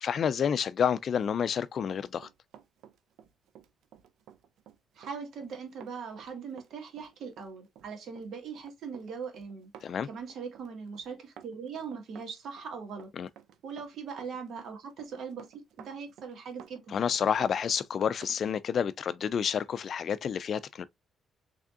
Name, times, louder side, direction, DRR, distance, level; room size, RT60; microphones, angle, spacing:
voice 1, 0.0-2.3 9.8-10.1 13.2-13.3 16.9-20.9, left 7 dB, 55° left, 0.3 m, -29 dB
Run, 1.4-18.4 18.7-18.9, right 9 dB, 85° right, 0.5 m, -54 dB
voice 2, 4.9-9.7 10.1-13.1 13.6-16.9, right 6 dB, 65° right, 1.4 m, -40 dB
3.7 x 3.4 x 2.4 m
cardioid pair, 90°, 0 cm